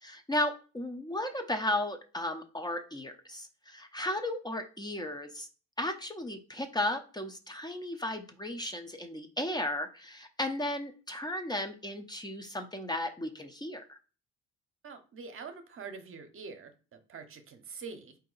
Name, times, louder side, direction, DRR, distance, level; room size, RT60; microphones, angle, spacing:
voice 1, 0.0-5.5 5.8-14.0, left 1 dB, 15° left, 5 dB, 0.6 m, -35 dB
voice 2, 14.8-18.2, right 5 dB, 50° right, 7 dB, 0.8 m, -45 dB
4.1 x 2.7 x 3.9 m, 0.35 s
cardioid pair, 95°, 29 cm